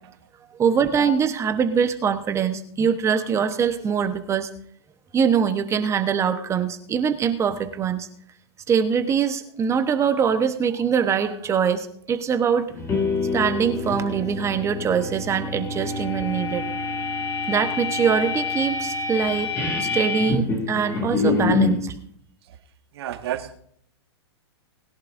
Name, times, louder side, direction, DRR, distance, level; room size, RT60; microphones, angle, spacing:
voice 1, 0.6-4.5 5.1-8.1 8.7-12.7 13.3-16.6 17.5-19.5 19.8-21.9, right 7 dB, 20° right, 8 dB, 1.0 m, -23 dB
sound 1, 12.7-21.8, left 4 dB, 20° left, 2.1 m, -26 dB
voice 2, 22.9-23.6, right 11 dB, 65° right, 7 dB, 1.6 m, -31 dB
20.5 x 11.0 x 2.6 m, 0.65 s
hypercardioid pair, 130°, 14 cm